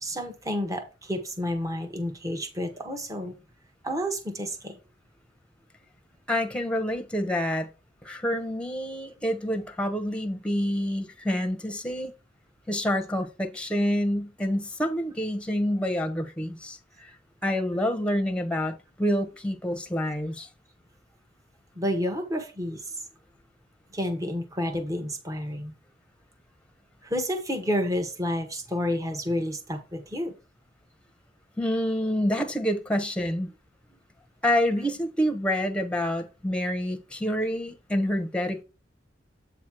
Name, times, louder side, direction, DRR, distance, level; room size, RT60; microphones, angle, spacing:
voice 1, 0.0-3.3 3.8-4.7 21.8-22.8 23.9-25.7 27.0-30.3, equal, 20° right, 1.1 m, -30 dB
voice 2, 6.3-7.7 8.0-12.1 12.7-17.1 17.4-20.5 31.6-33.5 34.4-38.6, equal, 5° left, 1.0 m, -27 dB
8.2 x 3.1 x 6.1 m
head